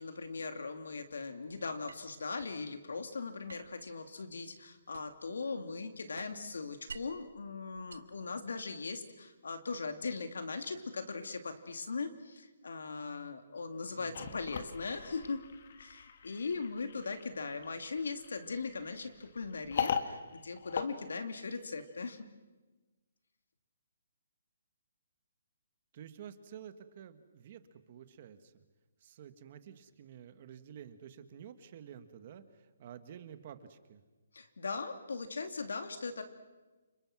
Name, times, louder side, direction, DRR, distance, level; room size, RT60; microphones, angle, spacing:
voice 1, 0.0-15.4 15.8-22.3 34.3-36.2, left 4 dB, 85° left, 7 dB, 2.7 m, -39 dB
sound 1, 1.9-2.6 3.5-5.3 5.7-7.3 7.7-8.8, right 5 dB, 85° right, 2.0 m, -52 dB
voice 2, 13.9-14.4 25.9-27.6 27.9-28.6 29.0-34.0, right 9 dB, 30° right, 11 dB, 1.4 m, -51 dB
sound 2, 14.1-21.8, left 7 dB, 40° left, 1.6 m, -40 dB
29.5 x 26.5 x 6.1 m, 1.2 s
hypercardioid pair, 175°, 0 cm